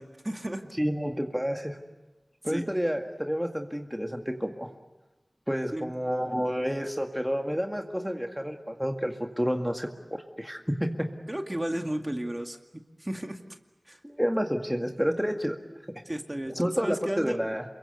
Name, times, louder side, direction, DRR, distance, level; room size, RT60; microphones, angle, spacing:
voice 1, 0.0-0.6 2.5-2.6 5.7-5.9 11.3-12.6 13.0-13.4 13.9-14.0 16.1-17.4, right 1 dB, 25° right, 4 dB, 2.3 m, -33 dB
voice 2, 0.8-1.8 2.4-4.7 5.5-11.1 14.0-15.6 16.5-17.7, equal, 5° right, 3 dB, 2.0 m, -29 dB
28.0 x 23.0 x 8.1 m, 1.1 s
wide cardioid pair, 55°, 0 cm